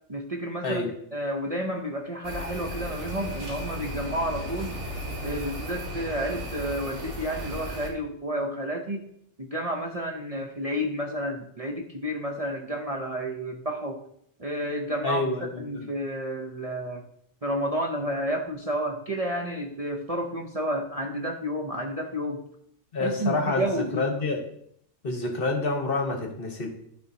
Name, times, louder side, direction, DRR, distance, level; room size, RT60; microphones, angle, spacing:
voice 1, 0.1-4.8 5.2-9.0 9.4-14.0 14.4-15.2 15.6-17.0 17.4-22.4 23.0-24.1, equal, 35° right, 1 dB, 0.7 m, -31 dB
sound 1, 2.2-7.9, equal, 65° right, 1.7 m, -35 dB
voice 2, 15.0-15.9 22.9-24.4 25.0-26.7, left 3 dB, 50° left, 2 dB, 1.3 m, -28 dB
12.0 x 4.3 x 2.8 m, 0.68 s
omnidirectional pair, 1.3 m